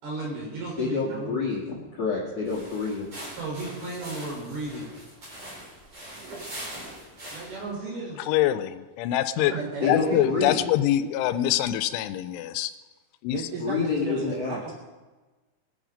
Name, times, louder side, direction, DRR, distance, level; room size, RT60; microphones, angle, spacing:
voice 1, 0.0-1.4 3.4-5.0 7.3-8.2 9.4-9.6, right 2 dB, 55° right, -2 dB, 6.2 m, -34 dB
voice 2, 0.8-3.1 9.8-10.6 13.6-14.6, left 4 dB, 50° left, -3 dB, 2.0 m, -28 dB
sound 1, 2.4-7.7, right 1 dB, 30° right, 5.1 m, -42 dB
voice 3, 8.2-9.5 9.9-12.7 13.2-13.4, left 13 dB, 85° left, 12 dB, 3.1 m, -24 dB
voice 4, 9.6-10.5 11.0-11.4 13.3-14.7, right 5 dB, 90° right, 1 dB, 1.8 m, -35 dB
21.5 x 9.3 x 5.1 m, 1.3 s
omnidirectional pair, 5.5 m